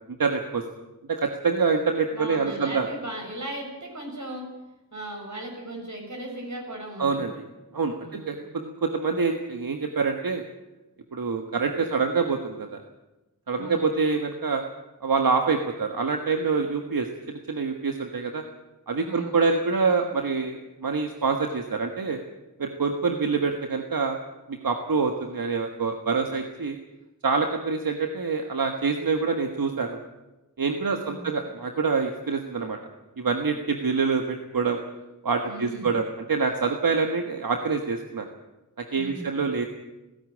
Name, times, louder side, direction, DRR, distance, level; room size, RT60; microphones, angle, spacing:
voice 1, 0.2-0.6 1.1-2.9 7.0-7.3 7.7-10.4 11.1-12.8 13.5-14.6 15.0-18.4 18.9-22.2 22.6-24.2 24.5-26.8 27.2-30.0 30.6-32.8 33.2-34.8 35.2-38.3 38.8-39.7, right 4 dB, 85° right, 4 dB, 1.6 m, -26 dB
voice 2, 2.1-4.5 4.9-7.3 8.0-8.4 13.5-13.9 19.0-19.4 30.9-31.4 35.4-35.9 38.9-39.3, right 1 dB, 55° right, 1 dB, 7.3 m, -37 dB
17.5 x 16.0 x 9.9 m, 1.0 s
wide cardioid pair, 50°, 34 cm